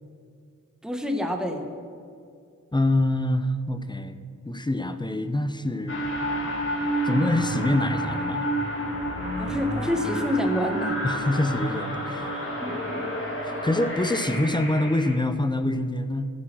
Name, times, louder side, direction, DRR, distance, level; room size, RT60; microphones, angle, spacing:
voice 1, 0.8-1.7 9.4-11.0 12.6-13.1, left 1 dB, ahead, 3 dB, 1.4 m, -28 dB
voice 2, 2.7-4.2 4.5-6.0 7.0-8.5 11.0-12.3 13.4-16.3, left 1 dB, 15° left, 10 dB, 0.7 m, -25 dB
sound 1, 5.9-15.2, right 1 dB, 35° left, 2.8 m, -29 dB
15.5 x 8.5 x 6.2 m, 2.3 s
wide cardioid pair, 85°, 33 cm